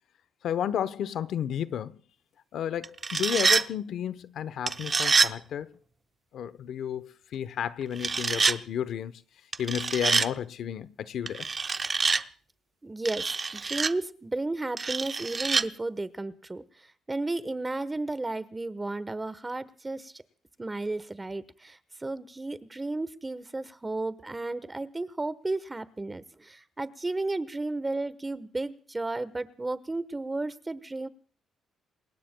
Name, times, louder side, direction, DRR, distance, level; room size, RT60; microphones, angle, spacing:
voice 1, 0.4-2.0 2.5-5.7 6.3-9.1 9.6-11.5, left 9 dB, 70° left, 0.8 m, -32 dB
sound 1, 2.8-3.6 4.7-5.3 8.0-8.6 9.5-10.3 11.3-12.2 13.0-13.9 14.8-15.6, right 4 dB, 35° right, 0.7 m, -26 dB
voice 2, 12.8-20.2 20.6-31.1, right 2 dB, 20° right, 1.1 m, -33 dB
28.0 x 21.0 x 2.3 m
cardioid pair, 90°, 0 cm